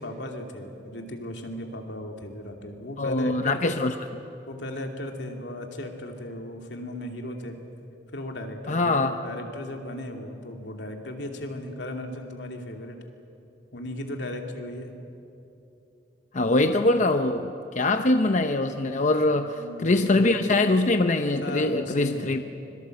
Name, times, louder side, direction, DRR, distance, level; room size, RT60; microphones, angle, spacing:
voice 1, 0.0-3.8 4.5-7.6 8.1-13.0 13.7-15.0 19.2-20.3 21.4-22.4, left 1 dB, 85° left, 3 dB, 2.7 m, -36 dB
voice 2, 3.0-3.9 8.7-9.1 16.3-22.4, left 2 dB, 45° left, 7 dB, 0.8 m, -23 dB
25.5 x 22.5 x 7.9 m, 2.8 s
head